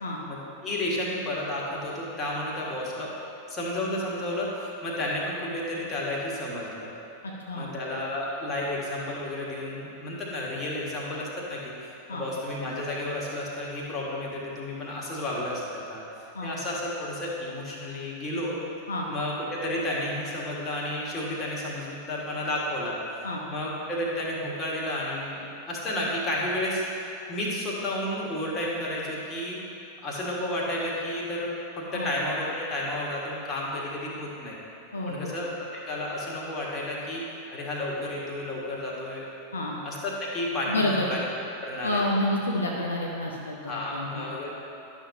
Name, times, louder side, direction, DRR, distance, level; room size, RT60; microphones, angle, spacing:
voice 1, 0.3-3.1 3.5-6.9 7.5-18.6 19.1-23.0 23.5-29.6 30.0-34.6 35.1-37.2 37.5-39.3 39.8-41.2 41.6-42.0 43.6-44.5, left 1 dB, 25° left, -4 dB, 1.6 m, -32 dB
voice 2, 34.9-35.3 39.5-39.8 40.7-41.1 41.8-44.3, left 1 dB, 75° left, -2 dB, 0.7 m, -29 dB
11.0 x 6.2 x 2.8 m, 2.9 s
figure-of-eight pair, 90°, 0 cm